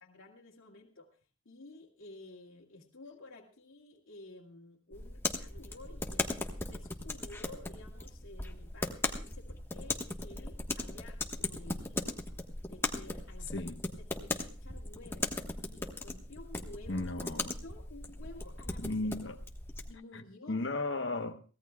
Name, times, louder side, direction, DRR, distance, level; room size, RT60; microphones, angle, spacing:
voice 1, 0.0-1.1 1.5-12.2 12.7-13.7 14.2-17.1 17.6-18.9 19.9-20.6, left 2 dB, 80° left, 2.2 m, -52 dB
sound 1, 4.9-19.9, left 2 dB, 10° left, 1.2 m, -38 dB
voice 2, 13.5-13.8 16.9-17.6 18.8-19.4 20.1-21.4, left 2 dB, 60° left, 1.0 m, -35 dB
23.5 x 17.5 x 2.3 m
head